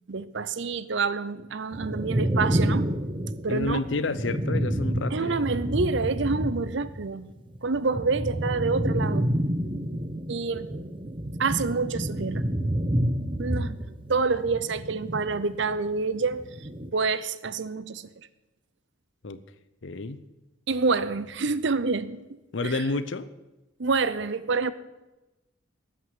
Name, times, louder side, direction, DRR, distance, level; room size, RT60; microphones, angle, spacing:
voice 1, 0.1-2.9 3.4-3.9 5.1-7.3 7.6-9.3 10.3-10.7 11.4-12.5 13.4-13.7 14.1-16.5 16.9-18.1 20.7-22.3 22.6-22.8 23.8-24.7, right 4 dB, 65° right, 15 dB, 0.7 m, -27 dB
sound 1, 1.7-7.0 7.3-15.9 16.2-16.9, right 1 dB, 25° right, 0.8 m, -29 dB
voice 2, 3.5-5.4 19.2-19.4 19.8-20.2 22.5-23.3, left 3 dB, 65° left, 14 dB, 0.7 m, -30 dB
13.0 x 6.1 x 9.4 m, 1.0 s
head